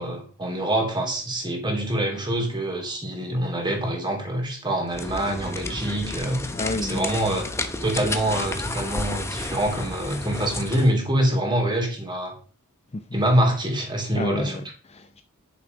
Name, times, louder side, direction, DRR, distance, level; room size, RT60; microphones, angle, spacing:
voice 1, 0.0-6.4 6.8-7.5 7.8-12.4 13.1-14.6, right 1 dB, 20° right, 3.2 m, -25 dB
sound 1, 4.9-10.9, left 2 dB, 10° left, 1.0 m, -32 dB
voice 2, 6.5-7.0 12.9-13.0 14.1-15.2, left 2 dB, 30° left, 0.6 m, -31 dB
10.5 x 7.2 x 5.2 m
head